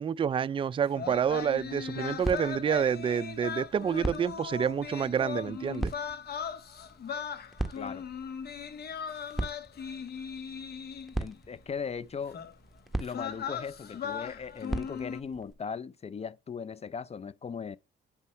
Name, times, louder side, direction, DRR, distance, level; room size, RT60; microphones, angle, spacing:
voice 1, 0.0-5.9, right 7 dB, 25° right, 0.3 m, -28 dB
sound 1, 0.9-11.3 12.3-12.5 13.0-15.2, left 7 dB, 55° left, 0.9 m, -38 dB
sound 2, 1.0-15.5, right 1 dB, ahead, 1.3 m, -41 dB
voice 2, 11.2-12.4 13.0-17.8, left 6 dB, 30° left, 0.5 m, -38 dB
8.4 x 5.4 x 3.1 m
supercardioid pair, 65°, 20 cm